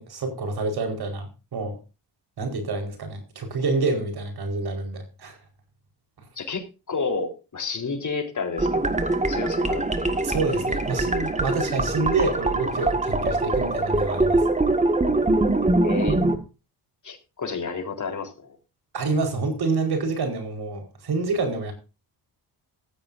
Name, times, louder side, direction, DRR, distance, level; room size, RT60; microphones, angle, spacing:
voice 1, 0.0-1.8 2.4-5.4 10.2-14.4 18.9-21.7, right 3 dB, 65° right, 4.7 m, -27 dB
voice 2, 6.4-8.9 9.3-9.9 15.6-16.2 17.0-18.6, left 4 dB, 45° left, 4.0 m, -31 dB
sound 1, 8.6-16.4, right 2 dB, 15° right, 1.9 m, -23 dB
16.5 x 14.5 x 2.7 m
cardioid pair, 100°, 42 cm